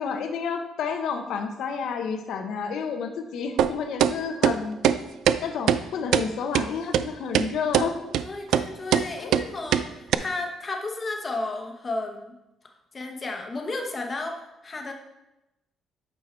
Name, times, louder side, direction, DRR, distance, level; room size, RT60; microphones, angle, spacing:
voice 1, 0.0-4.8 5.4-8.0 9.2-9.3, left 6 dB, 70° left, 6 dB, 0.8 m, -30 dB
sound 1, 3.6-3.7 4.0-4.1 4.4-4.6 4.8-5.0 5.3-5.4 5.7-5.8 6.1-6.3 6.5-6.7 6.9-7.0 7.3-7.5 7.7-7.9 8.1-8.2 8.5-8.7 8.9-9.0 9.3-9.4 9.7-9.8 10.1-10.2, right 10 dB, 75° right, 0.3 m, -20 dB
voice 2, 8.2-12.3 12.9-14.9, left 2 dB, 25° left, 3 dB, 1.0 m, -33 dB
8.7 x 4.6 x 4.4 m, 0.95 s
cardioid pair, 150°, 0 cm